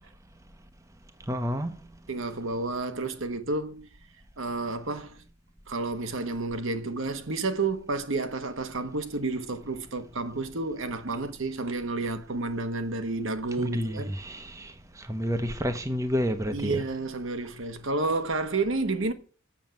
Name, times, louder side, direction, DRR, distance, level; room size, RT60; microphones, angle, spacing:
voice 1, 1.3-1.7 13.6-16.8, equal, 15° right, 0.7 m, -30 dB
voice 2, 2.1-3.9 4.4-5.2 5.7-14.1 16.5-19.1, right 3 dB, 60° right, 1.1 m, -30 dB
7.3 x 6.9 x 7.4 m
head